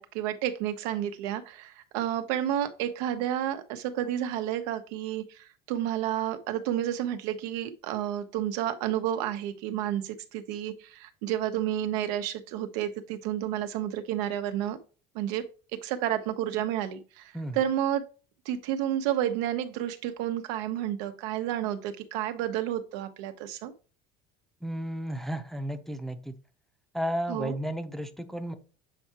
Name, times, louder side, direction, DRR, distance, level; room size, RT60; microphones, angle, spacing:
voice 1, 0.0-14.8 15.1-15.4 15.8-18.0 18.4-23.7 27.3-27.6, right 11 dB, 90° right, 8 dB, 1.0 m, -31 dB
voice 2, 24.6-26.4 26.9-28.5, equal, ahead, 6 dB, 0.6 m, -33 dB
7.7 x 4.6 x 2.9 m, 0.35 s
cardioid pair, 150°, 20 cm